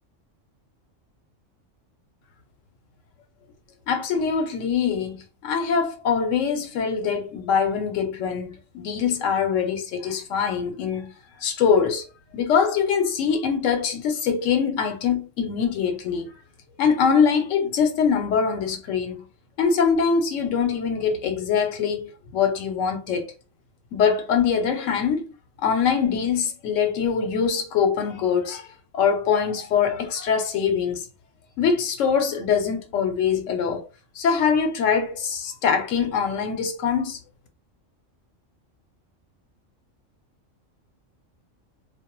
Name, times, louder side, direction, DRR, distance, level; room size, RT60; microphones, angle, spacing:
voice 1, 3.9-11.1 11.4-12.0 12.3-16.3 16.8-19.3 19.6-23.3 23.9-25.2 25.6-28.7 28.9-31.1 31.6-33.9 34.1-37.2, left 6 dB, 80° left, 1.0 m, -23 dB
2.2 x 2.1 x 2.9 m
omnidirectional pair, 1.3 m